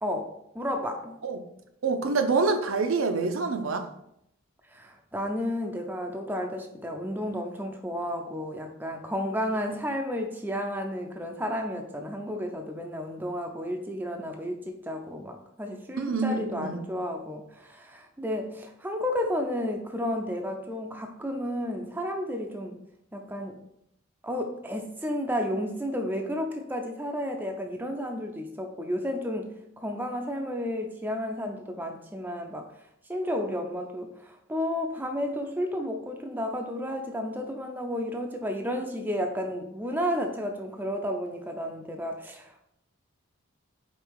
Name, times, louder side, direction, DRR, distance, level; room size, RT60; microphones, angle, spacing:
voice 1, 0.0-1.1 4.7-22.8 23.1-23.6 24.2-29.5 29.8-32.7 33.1-42.6, equal, 10° right, 3 dB, 0.5 m, -32 dB
voice 2, 1.8-3.9 16.0-16.8, right 4 dB, 75° right, 7 dB, 0.7 m, -26 dB
5.3 x 3.9 x 4.7 m, 0.76 s
head